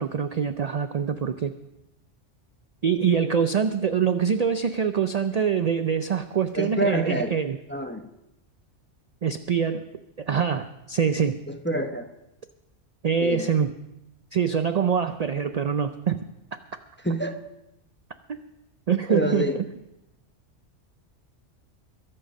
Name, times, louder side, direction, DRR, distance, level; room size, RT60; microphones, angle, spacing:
voice 1, 0.0-1.5 2.8-7.6 9.2-9.9 10.2-11.4 13.0-13.7 14.3-16.2 18.3-18.4 18.9-19.5, right 7 dB, 50° right, 9 dB, 0.5 m, -24 dB
voice 2, 6.6-7.3 7.7-8.1 11.5-12.1 13.2-13.5 17.0-17.4 19.1-19.6, equal, 10° left, 5 dB, 0.7 m, -27 dB
22.5 x 7.7 x 5.3 m, 0.90 s
omnidirectional pair, 1.2 m